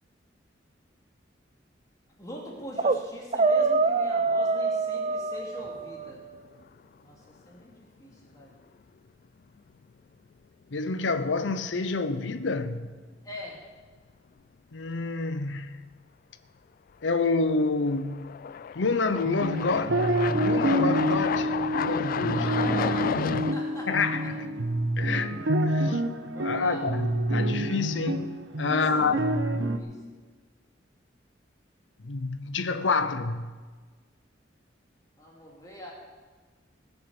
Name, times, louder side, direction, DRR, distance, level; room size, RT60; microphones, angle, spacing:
voice 1, 2.2-6.2 7.0-8.5 13.2-13.6 22.2-24.3 26.3-26.8 28.7-29.2 29.7-30.0 35.2-35.9, equal, 20° left, 2.5 m, -42 dB
sound 1, 2.5-3.0 3.3-6.1, right 3 dB, 35° right, 0.5 m, -25 dB
sound 2, 5.6-6.2 6.6-6.7 9.6-9.7 11.0-11.2 11.6-11.7 17.0-17.1 17.9-23.5, left 7 dB, 50° left, 0.3 m, -32 dB
voice 2, 10.7-12.9 14.7-15.8 17.0-18.3 18.7-21.5 21.8-22.5 23.9-24.5 25.0-26.0 26.4-29.2 32.0-33.6, left 4 dB, 80° left, 0.8 m, -28 dB
sound 3, 19.2-29.8, right 1 dB, 90° right, 1.0 m, -27 dB
19.5 x 7.1 x 7.2 m
head